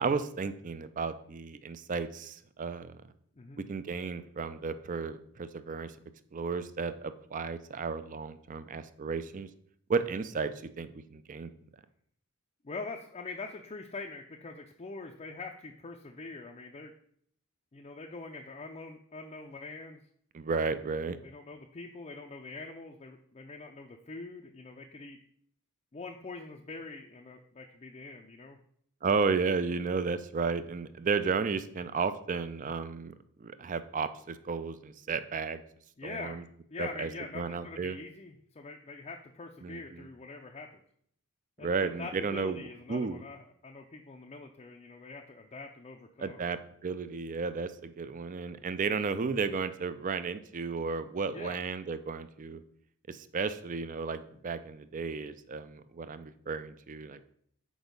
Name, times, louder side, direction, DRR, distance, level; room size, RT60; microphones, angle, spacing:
voice 1, 0.0-3.0 3.6-5.9 6.3-9.5 9.9-11.5 20.3-21.2 29.0-33.1 33.4-35.6 36.0-36.4 36.8-37.1 37.3-38.0 39.6-40.1 41.6-43.2 46.2-52.6 53.1-57.3, right 5 dB, 35° right, 13 dB, 0.4 m, -33 dB
voice 2, 12.6-16.9 17.7-20.0 21.2-25.2 25.9-28.6 36.0-40.8 41.6-46.5 51.3-51.6, left 3 dB, 30° left, 1 dB, 0.5 m, -44 dB
6.2 x 4.7 x 5.2 m, 0.65 s
head